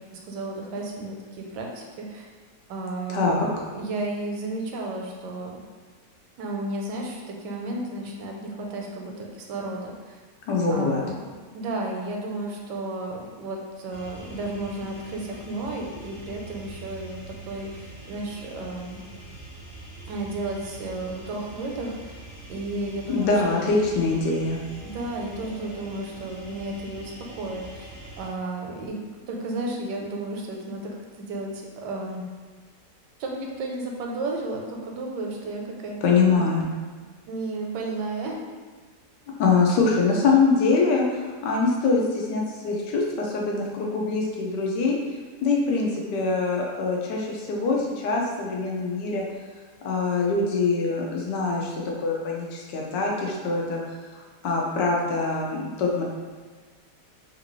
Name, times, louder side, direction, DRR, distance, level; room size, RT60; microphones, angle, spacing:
voice 1, 0.0-2.3 2.7-5.5 6.4-10.2 10.7-17.2 17.5-19.0 20.1-22.2 22.5-23.8 24.8-27.9 28.2-29.0 29.3-32.2 33.2-36.0 36.3-36.4 37.3-38.4, right 2 dB, 85° right, 0 dB, 1.2 m, -33 dB
voice 2, 3.1-3.5 10.5-11.0 23.1-24.6 36.0-36.6 39.3-45.0 45.4-49.2 49.8-51.7 52.0-53.8 54.4-56.0, left 4 dB, 85° left, -1 dB, 1.3 m, -23 dB
sound 1, 13.9-28.3, right 2 dB, 50° left, 1.0 m, -43 dB
3.3 x 2.6 x 3.0 m, 1.5 s
omnidirectional pair, 1.8 m